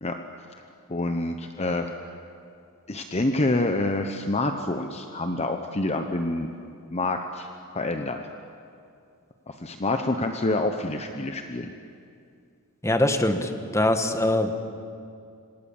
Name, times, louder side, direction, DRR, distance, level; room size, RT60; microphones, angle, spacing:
voice 1, 0.9-1.9 2.9-6.5 6.9-7.5 7.7-8.2 9.5-11.7, left 2 dB, 30° left, 6 dB, 1.0 m, -27 dB
voice 2, 12.8-14.5, left 1 dB, 15° left, 7 dB, 1.5 m, -23 dB
26.5 x 26.5 x 7.3 m, 2.4 s
head